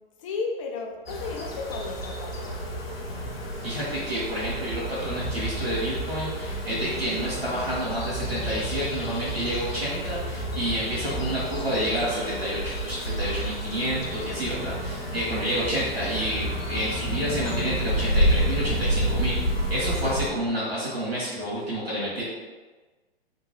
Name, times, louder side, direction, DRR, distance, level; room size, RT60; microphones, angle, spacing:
voice 1, 0.2-2.6, left 4 dB, 35° left, 1 dB, 0.5 m, -33 dB
sound 1, 1.1-20.3, equal, 75° left, 0.7 m, -30 dB
voice 2, 3.6-19.4 19.7-22.2, equal, 90° right, -9 dB, 1.3 m, -29 dB
2.8 x 2.2 x 3.1 m, 1.3 s
figure-of-eight pair, 110°, 30 cm